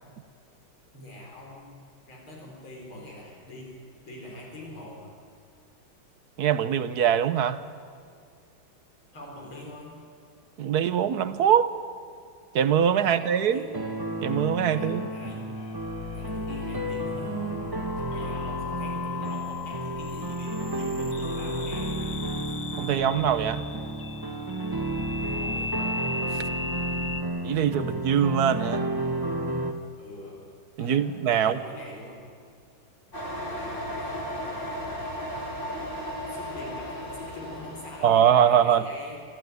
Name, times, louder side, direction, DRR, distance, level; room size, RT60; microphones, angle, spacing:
voice 1, 0.9-5.2 9.1-10.1 13.0-13.8 14.7-15.5 16.1-17.7 18.1-22.1 22.5-22.6 25.2-26.2 30.0-30.5 30.8-32.3 33.3-35.0 36.2-39.2, left 1 dB, 90° left, -1 dB, 5.3 m, -44 dB
voice 2, 6.4-7.6 10.6-11.7 12.5-13.6 14.2-15.1 22.8-23.6 27.4-28.9 30.8-31.6 38.0-38.9, right 9 dB, 60° right, 13 dB, 1.2 m, -22 dB
sound 1, 13.7-29.7, right 1 dB, 15° right, 1.2 m, -32 dB
sound 2, 15.6-27.2, left 4 dB, 45° left, 0.9 m, -37 dB
sound 3, 33.1-38.4, equal, 25° left, 3.3 m, -35 dB
25.5 x 14.0 x 9.5 m, 2.3 s
omnidirectional pair, 2.2 m